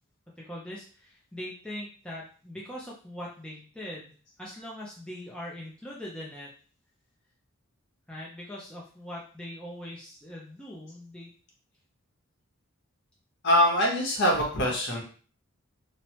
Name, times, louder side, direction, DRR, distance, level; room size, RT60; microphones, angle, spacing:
voice 1, 0.4-4.1 4.4-6.5 8.1-11.3, left 1 dB, 5° left, -5 dB, 0.4 m, -41 dB
voice 2, 13.4-15.0, equal, 55° left, -1 dB, 1.0 m, -23 dB
3.1 x 2.0 x 2.9 m, 0.41 s
head